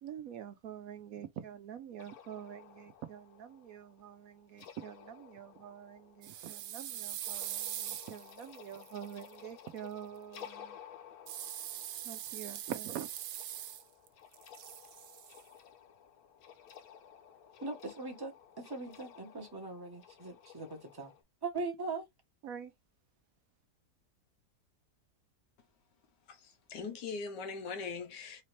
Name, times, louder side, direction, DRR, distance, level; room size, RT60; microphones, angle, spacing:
voice 1, 0.0-10.8 12.0-13.1 22.4-22.7, right 9 dB, 70° right, 0.9 m, -46 dB
sound 1, 2.0-21.2, left 9 dB, 65° left, 1.1 m, -55 dB
sound 2, 6.2-9.3 11.3-14.1 14.3-15.4, right 11 dB, 85° right, 1.2 m, -42 dB
voice 2, 17.6-21.1 21.4-22.0, right 3 dB, 20° right, 0.7 m, -40 dB
voice 3, 26.3-28.4, left 5 dB, 85° left, 1.4 m, -41 dB
4.2 x 2.7 x 3.1 m
omnidirectional pair, 1.8 m